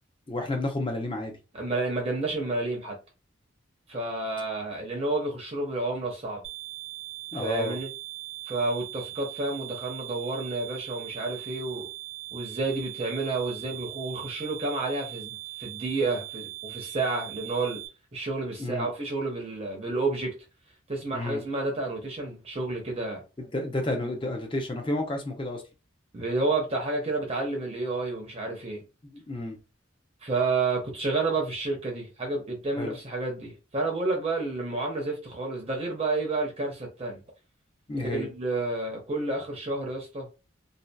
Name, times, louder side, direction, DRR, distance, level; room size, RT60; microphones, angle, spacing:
voice 1, 0.3-1.4 7.3-7.8 18.6-18.9 21.1-21.4 23.4-25.6 29.1-29.6 32.8-33.0 37.9-38.3, left 1 dB, 25° left, 0.6 m, -31 dB
voice 2, 1.5-3.0 3.9-6.4 7.3-7.9 8.5-11.9 12.3-17.8 18.1-20.3 20.9-23.2 26.1-28.8 30.2-37.2 38.0-40.3, right 3 dB, 30° right, 0.6 m, -30 dB
sound 1, 6.4-17.9, right 16 dB, 75° right, 0.6 m, -40 dB
2.7 x 2.3 x 2.2 m
head